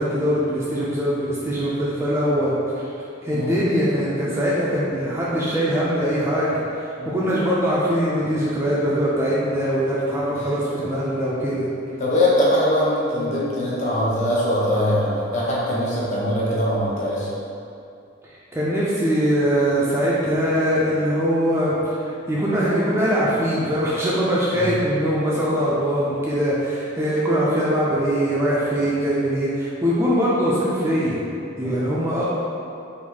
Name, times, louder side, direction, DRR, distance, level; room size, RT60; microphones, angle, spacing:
voice 1, 0.0-2.9 3.2-11.7 18.2-22.0 22.3-31.2 31.6-32.2, equal, 15° right, -7 dB, 0.3 m, -22 dB
voice 2, 12.0-17.3 24.5-24.8 31.6-31.8, left 1 dB, 35° left, -7 dB, 0.7 m, -22 dB
3.9 x 2.6 x 2.8 m, 2.6 s
head